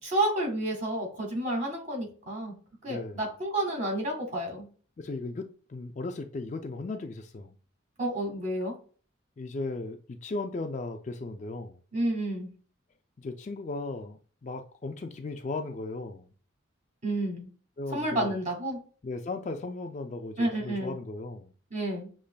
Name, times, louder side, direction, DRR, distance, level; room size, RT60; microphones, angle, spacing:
voice 1, 0.0-2.6 2.8-4.7 8.0-8.7 11.9-12.5 17.0-17.5 17.9-18.8 20.4-21.0 21.7-22.1, right 1 dB, 35° right, 1.7 m, -30 dB
voice 2, 2.9-3.2 5.0-7.6 9.4-11.8 13.2-16.3 17.8-18.4 19.0-21.5, left 3 dB, 35° left, 0.3 m, -36 dB
6.5 x 3.1 x 2.2 m
head